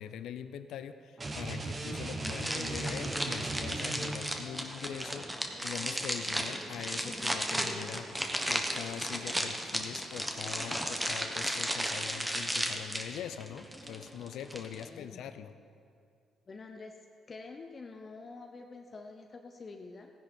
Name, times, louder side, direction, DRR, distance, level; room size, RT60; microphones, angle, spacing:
voice 1, 0.0-8.1 8.4-15.5, left 9 dB, 80° left, 10 dB, 0.6 m, -43 dB
sound 1, 1.2-4.4, right 2 dB, 30° right, 1.2 m, -37 dB
sound 2, 2.2-14.9, equal, 5° right, 1.2 m, -35 dB
voice 2, 14.8-15.2 16.5-17.0 17.3-20.1, left 3 dB, 40° left, 3 dB, 0.8 m, -47 dB
16.0 x 10.0 x 4.4 m, 2.3 s
cardioid pair, 90°, 0 cm